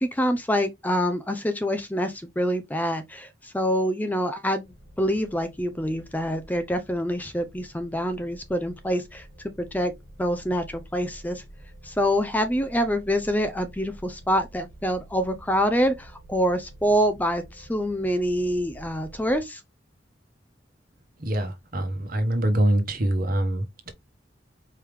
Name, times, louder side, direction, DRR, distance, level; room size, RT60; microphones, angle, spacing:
voice 1, 0.0-9.9 10.2-11.4 11.8-19.6, equal, 10° left, 0.5 m, -26 dB
sound 1, 4.6-19.4, right 1 dB, 80° left, 2.9 m, -48 dB
voice 2, 21.2-23.9, right 1 dB, 50° right, 1.1 m, -24 dB
4.7 x 3.5 x 3.1 m
head